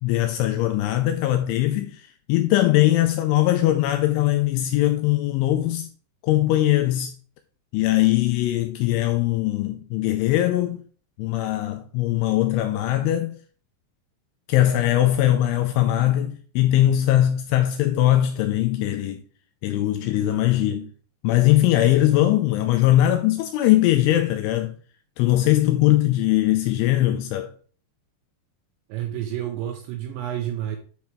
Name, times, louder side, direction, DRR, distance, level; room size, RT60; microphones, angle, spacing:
voice 1, 0.0-5.9 6.2-7.1 7.7-10.8 11.2-13.4 14.5-19.2 19.6-20.9 21.2-24.7 25.2-27.5, left 14 dB, 85° left, 2.8 m, -20 dB
voice 2, 28.9-30.8, right 11 dB, 80° right, 2.7 m, -29 dB
9.4 x 4.8 x 3.5 m
omnidirectional pair, 5.9 m